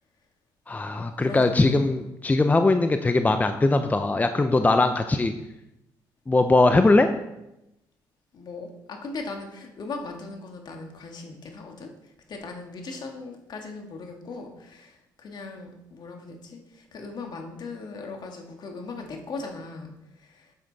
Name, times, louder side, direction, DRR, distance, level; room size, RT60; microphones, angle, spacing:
voice 1, 0.7-5.3 6.3-7.1, left 2 dB, 20° left, 8 dB, 0.6 m, -20 dB
voice 2, 1.2-1.9 8.3-20.5, left 3 dB, 55° left, 3 dB, 1.9 m, -39 dB
9.2 x 7.5 x 4.1 m, 0.90 s
supercardioid pair, 65°, 9 cm